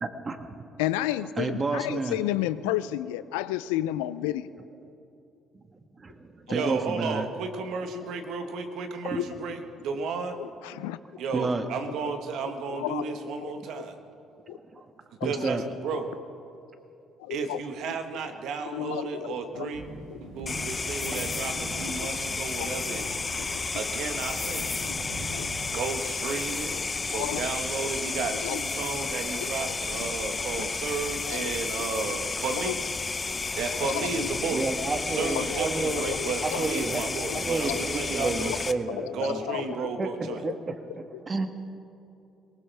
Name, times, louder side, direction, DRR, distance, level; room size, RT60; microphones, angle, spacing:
voice 1, 0.0-0.4 1.4-2.2 6.0-7.3 9.1-9.2 11.3-11.6 14.5-14.8 15.2-15.6 21.0-21.2 34.0-34.1 34.5-36.1 36.4-37.0 37.3-39.4 40.0-40.1 40.4-41.5, right 3 dB, 35° right, 7 dB, 1.5 m, -30 dB
voice 2, 0.8-4.5 6.6-6.7 7.9-8.1 9.1-9.3 10.4-11.0 12.7-13.1 13.4-13.8 14.5-14.6 15.2-15.5 15.9-16.0 17.2-17.6 18.7-19.7 20.1-20.2 21.9-22.1 22.6-22.8 23.4-23.8 25.3-25.5 26.7-26.8 27.1-27.4 28.2-28.6 29.4-30.7 31.3-31.5 31.9-32.2 32.7-32.8 33.9-34.3 35.2-36.9 37.3-38.6 38.9-39.9 40.5-40.6 41.1-41.2, left 14 dB, 90° left, 15 dB, 0.4 m, -33 dB
voice 3, 6.5-10.4 11.2-14.0 15.2-16.1 17.3-19.8 20.2-23.2 23.7-24.7 25.7-26.7 27.1-32.8 33.6-34.7 35.1-38.5 39.1-40.4, right 5 dB, 70° right, 6 dB, 1.4 m, -33 dB
sound 1, 19.7-29.8, right 2 dB, 85° right, 2.7 m, -44 dB
sound 2, 20.5-38.7, left 4 dB, 30° left, 0.7 m, -32 dB
22.0 x 18.5 x 3.5 m, 2.7 s
supercardioid pair, 65°, 0 cm